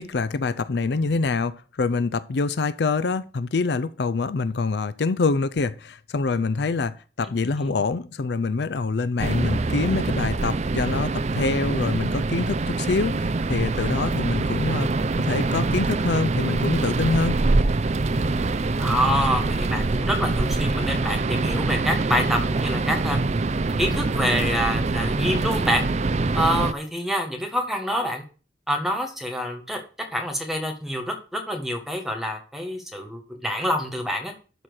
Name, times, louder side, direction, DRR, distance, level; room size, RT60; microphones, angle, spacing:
voice 1, 0.0-14.9 15.2-17.4, left 3 dB, 65° left, 0.5 m, -25 dB
sound 1, 9.2-26.7, right 3 dB, 40° right, 0.5 m, -24 dB
voice 2, 18.8-23.2 23.8-25.8 26.3-28.2 28.7-29.8 30.1-34.3, equal, ahead, 1.7 m, -26 dB
12.0 x 4.4 x 6.4 m
head